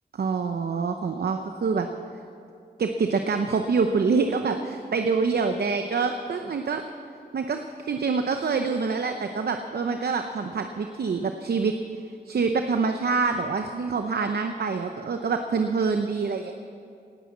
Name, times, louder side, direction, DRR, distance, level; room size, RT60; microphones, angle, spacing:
voice 1, 0.1-1.9 2.8-6.8 7.3-11.8 12.3-16.5, right 4 dB, 65° right, 6 dB, 0.8 m, -26 dB
18.5 x 9.8 x 7.3 m, 2.4 s
wide cardioid pair, 95°, 18 cm